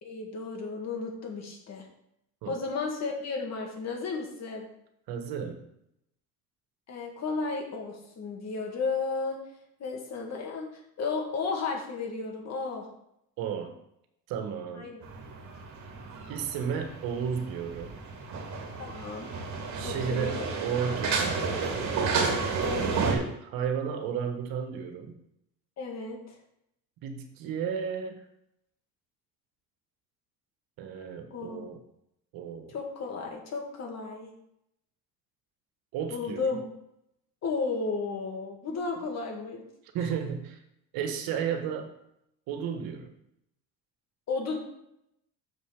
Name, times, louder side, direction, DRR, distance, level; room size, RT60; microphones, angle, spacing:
voice 1, 0.0-1.9 2.5-4.7 6.9-9.4 9.8-10.7 11.0-12.9 14.7-15.0 18.8-19.3 19.8-20.5 22.6-23.1 25.8-26.4 31.3-31.7 32.7-34.3 36.1-36.6 37.4-39.6 44.3-44.6, left 4 dB, 50° left, 1 dB, 2.4 m, -33 dB
voice 2, 5.1-5.6 13.4-13.7 14.3-14.9 16.3-17.9 19.7-21.7 23.0-25.2 27.0-28.2 30.8-31.8 32.3-32.7 35.9-36.4 39.9-40.6 40.9-41.9 42.5-43.1, right 7 dB, 80° right, 5 dB, 1.6 m, -33 dB
sound 1, 15.0-23.2, right 4 dB, 55° right, 2.4 m, -31 dB
6.9 x 5.5 x 6.6 m, 0.78 s
cardioid pair, 115°, 35 cm